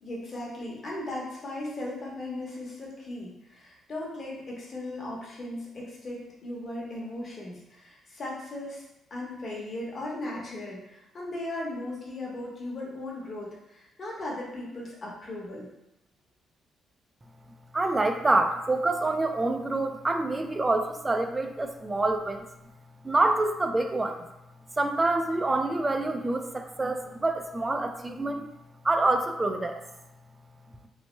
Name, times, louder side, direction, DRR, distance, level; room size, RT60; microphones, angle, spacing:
voice 1, 0.0-8.8 9.1-15.7, left 1 dB, 45° left, -3 dB, 0.9 m, -37 dB
voice 2, 17.7-22.5 23.0-24.3 24.8-28.5 28.8-29.8, right 2 dB, 20° right, 6 dB, 0.3 m, -26 dB
3.1 x 2.0 x 3.1 m, 0.90 s
cardioid pair, 90°, 0 cm